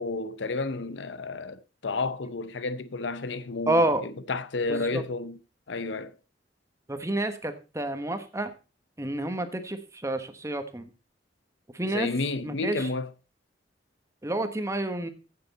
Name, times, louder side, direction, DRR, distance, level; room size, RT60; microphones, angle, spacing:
voice 1, 0.0-5.4 5.7-6.2 11.8-13.1, left 3 dB, 85° left, 0.7 m, -31 dB
voice 2, 3.7-4.0 4.7-5.0 6.9-8.5 9.0-10.9 11.7-12.1 12.4-12.9 14.2-15.1, right 1 dB, 15° right, 1.2 m, -29 dB
15.0 x 6.9 x 4.1 m
head